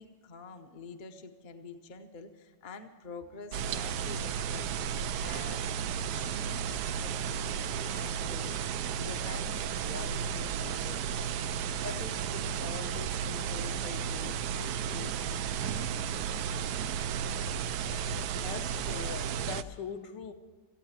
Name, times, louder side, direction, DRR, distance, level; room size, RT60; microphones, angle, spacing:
voice 1, 0.0-16.1 17.9-18.0, left 4 dB, 40° left, 0.7 m, -47 dB
sound 1, 3.5-19.6, right 7 dB, 70° right, 1.0 m, -33 dB
voice 2, 18.4-20.3, left 7 dB, 70° left, 1.5 m, -41 dB
15.5 x 9.0 x 8.8 m
omnidirectional pair, 2.1 m